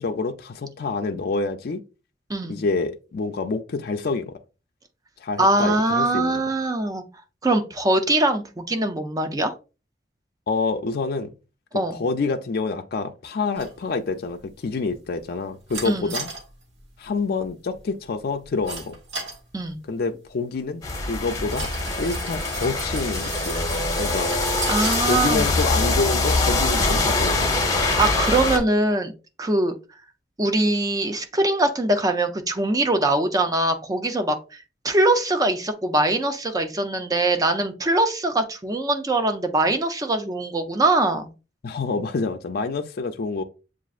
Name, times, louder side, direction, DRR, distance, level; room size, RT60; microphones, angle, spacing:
voice 1, 0.0-1.8 2.5-4.4 5.2-6.4 10.5-11.3 11.9-16.3 17.0-19.0 19.9-20.8 21.1-24.3 25.1-27.5 41.6-43.4, left 4 dB, 55° left, 0.4 m, -27 dB
voice 2, 2.3-2.6 5.4-7.0 7.4-9.5 11.7-12.0 15.8-16.2 19.5-19.8 24.7-25.5 27.6-29.1 29.4-29.7 30.4-34.4 34.8-41.3, right 2 dB, 20° right, 0.5 m, -22 dB
sound 1, 13.6-26.9, right 3 dB, 85° right, 1.2 m, -39 dB
sound 2, 20.8-28.6, left 2 dB, 20° left, 0.8 m, -23 dB
7.1 x 2.5 x 2.4 m
head